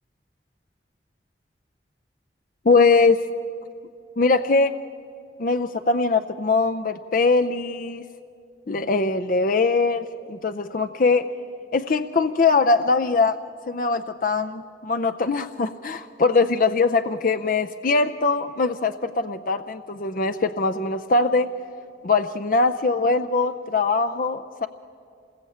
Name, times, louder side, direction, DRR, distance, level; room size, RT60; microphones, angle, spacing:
voice 1, 2.6-3.3 4.2-4.8 5.4-8.0 8.7-11.3 11.7-13.4 13.7-21.5 22.0-24.7, left 3 dB, 50° left, 8 dB, 0.6 m, -21 dB
27.0 x 21.0 x 8.6 m, 2.5 s
head